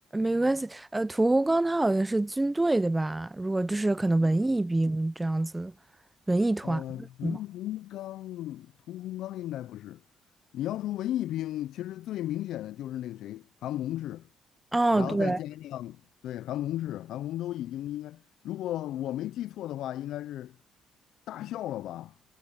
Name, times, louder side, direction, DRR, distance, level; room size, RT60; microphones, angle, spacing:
voice 1, 0.1-5.7 6.3-7.4 14.7-15.4, right 2 dB, 10° right, 0.4 m, -26 dB
voice 2, 6.6-10.0 10.5-14.3 14.9-20.6 21.3-22.1, left 13 dB, 80° left, 0.3 m, -35 dB
cardioid pair, 125°, 0 cm